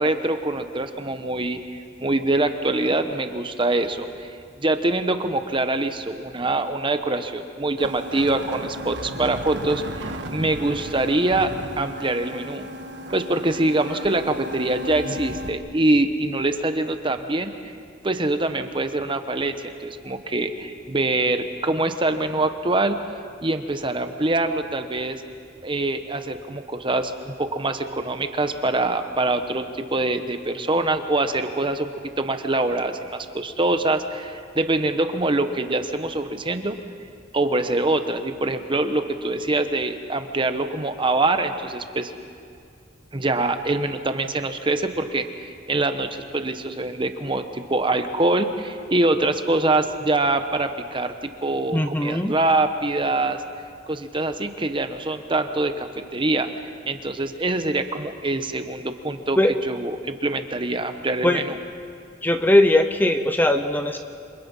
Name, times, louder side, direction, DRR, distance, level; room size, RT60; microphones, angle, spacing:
voice 1, 0.0-12.7 13.1-17.5 18.0-23.0 23.4-25.2 25.6-29.6 29.9-31.9 32.2-36.8 37.3-42.1 43.1-51.1 51.4-53.4 53.9-56.5 56.9-61.6, right 2 dB, 25° right, 8 dB, 1.1 m, -24 dB
sound 1, 7.8-15.5, equal, 65° right, 1.6 m, -35 dB
voice 2, 51.7-52.3 59.4-59.5 61.2-61.4 62.2-64.0, left 1 dB, 10° left, 7 dB, 0.8 m, -19 dB
28.0 x 26.0 x 5.6 m, 2.3 s
head